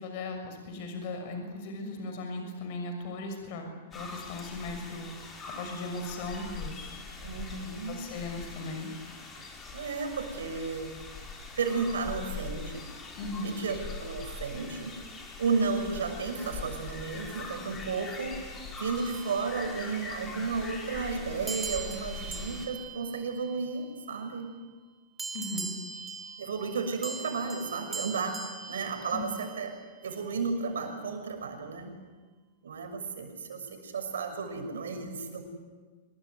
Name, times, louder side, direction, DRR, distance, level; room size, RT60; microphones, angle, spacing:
voice 1, 0.0-5.3 5.6-7.0 7.9-8.9 13.2-13.6 25.3-25.8 29.1-29.2, left 2 dB, 55° left, 5 dB, 6.5 m, -37 dB
sound 1, 3.9-22.7, left 3 dB, 20° left, 5.9 m, -42 dB
voice 2, 7.2-8.0 9.7-10.9 11.6-12.8 13.4-15.0 15.4-18.4 18.8-24.5 26.4-28.4 28.7-29.7 30.0-32.0 32.6-35.4, right 4 dB, 80° right, 5 dB, 6.3 m, -33 dB
sound 2, 19.0-20.2 21.5-24.2 25.2-29.7, right 5 dB, 15° right, 3.5 m, -41 dB
25.5 x 22.0 x 9.6 m, 1.4 s
hypercardioid pair, 115°, 0 cm